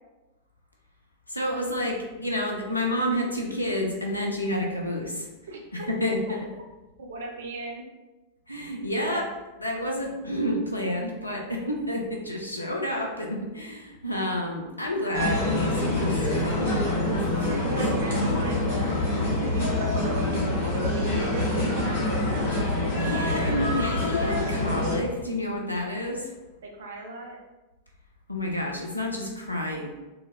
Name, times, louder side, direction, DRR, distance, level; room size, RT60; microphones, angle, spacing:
voice 1, 1.3-5.3 5.7-6.4 8.5-9.2 9.6-16.8 17.1-17.8 23.0-26.3 28.3-29.9, left 1 dB, 85° left, 0 dB, 0.4 m, -30 dB
voice 2, 5.5-5.9 7.0-7.9 8.9-9.3 17.5-18.6 19.3-22.6 26.6-27.4, right 2 dB, 65° right, 0 dB, 0.5 m, -36 dB
sound 1, 15.1-25.0, left 1 dB, 65° left, 1.1 m, -26 dB
3.8 x 2.0 x 2.5 m, 1.1 s
figure-of-eight pair, 90°, 0 cm